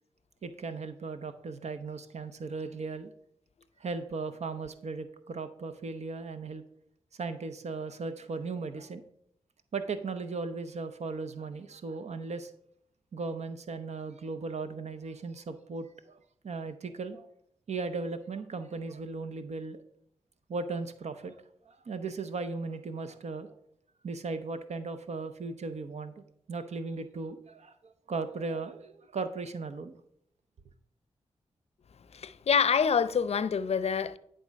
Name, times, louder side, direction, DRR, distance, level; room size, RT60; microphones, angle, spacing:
voice 1, 0.4-3.1 3.8-6.6 7.2-9.0 9.7-12.5 13.1-16.2 16.4-17.3 17.7-19.8 20.5-21.3 21.7-23.5 24.0-26.2 26.5-30.0, right 4 dB, 65° right, 0.7 m, -37 dB
voice 2, 32.1-34.2, left 6 dB, 55° left, 0.5 m, -26 dB
10.5 x 3.7 x 5.2 m
cardioid pair, 45°, 12 cm